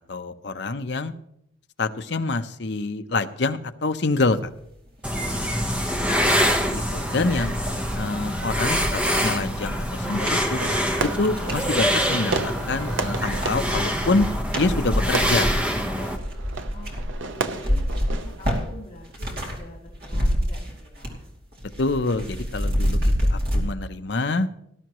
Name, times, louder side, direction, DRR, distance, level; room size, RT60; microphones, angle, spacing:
voice 1, 0.1-1.1 1.8-4.5 6.7-7.5 8.0-10.6 11.0-14.3 14.5-16.0 21.8-24.5, left 3 dB, 60° left, 9 dB, 0.7 m, -26 dB
sound 1, 5.0-16.2, equal, 5° right, 1.0 m, -25 dB
sound 2, 5.0-5.1 5.5-11.7 12.2-12.8 13.1-19.6 19.9-21.3 21.5-23.6, equal, 50° right, 2.7 m, -28 dB
voice 2, 5.1-6.5 16.7-21.2, left 1 dB, 25° left, -6 dB, 2.7 m, -46 dB
Fireworks, 10.6-18.7, right 3 dB, 75° right, 0.8 m, -33 dB
18.5 x 12.0 x 3.1 m, 0.74 s
head